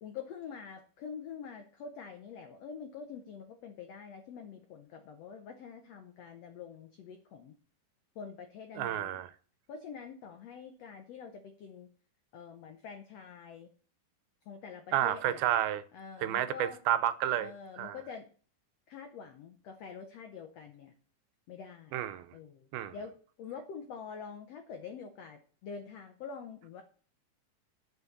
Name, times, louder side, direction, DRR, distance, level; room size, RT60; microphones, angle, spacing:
voice 1, 0.0-7.5 8.1-9.2 9.7-11.9 12.3-13.7 14.5-15.4 15.9-16.8 17.4-18.3 18.9-20.9 21.5-22.0 22.3-23.1 23.4-26.8, left 6 dB, 85° left, 1.4 m, -46 dB
voice 2, 8.7-9.3 14.9-15.8 16.2-17.5 17.8-18.0 21.9-22.3 22.7-22.9, right 12 dB, 90° right, 2.6 m, -30 dB
9.8 x 6.2 x 6.5 m
omnidirectional pair, 4.2 m